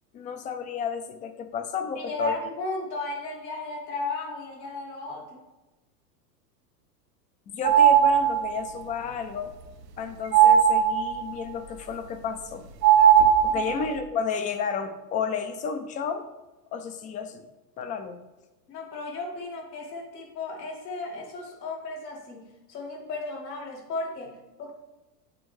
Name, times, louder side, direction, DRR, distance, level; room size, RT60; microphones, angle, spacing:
voice 1, 0.1-2.4 7.5-9.5 10.0-12.7 13.5-16.3 16.7-17.4 17.8-18.2, left 6 dB, 20° left, 8 dB, 0.3 m, -32 dB
voice 2, 2.0-5.4 13.5-13.8 18.7-24.7, left 2 dB, 80° left, 0 dB, 1.8 m, -35 dB
sound 1, 7.6-8.6 10.3-11.3 12.8-13.9, right 9 dB, 85° right, 0.8 m, -18 dB
9.9 x 4.2 x 3.1 m, 1.1 s
hypercardioid pair, 105°, 49 cm